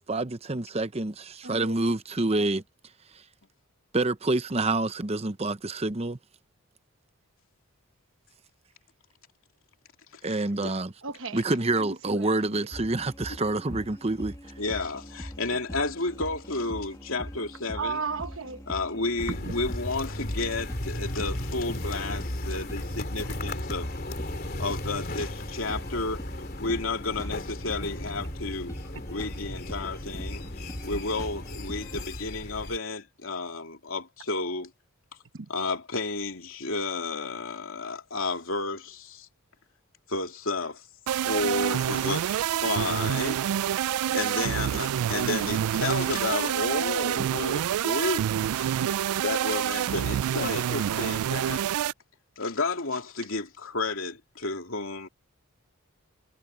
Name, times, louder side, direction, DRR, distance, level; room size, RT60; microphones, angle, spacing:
voice 1, 0.1-2.6 3.9-6.2 10.2-10.9 11.3-14.4, right 2 dB, 30° right, 0.8 m, -27 dB
voice 2, 1.4-1.8 11.0-11.4 11.8-12.6 15.5-15.6 17.7-18.6 19.3-19.5 35.3-35.5 47.2-47.3 48.7-49.0, right 4 dB, 60° right, 1.0 m, -35 dB
sound 1, 12.7-32.1, equal, 15° left, 1.9 m, -42 dB
voice 3, 14.6-18.0 18.7-23.9 24.5-26.2 26.6-28.8 29.1-30.4 30.8-34.7 35.5-39.3 40.1-40.8 41.2-43.4 43.8-48.2 48.5-48.7 49.2-51.6 52.4-55.1, left 3 dB, 65° left, 2.9 m, -32 dB
sound 2, 19.2-32.8, left 1 dB, 45° left, 3.0 m, -36 dB
sound 3, 41.1-51.9, right 10 dB, 80° right, 0.3 m, -27 dB
head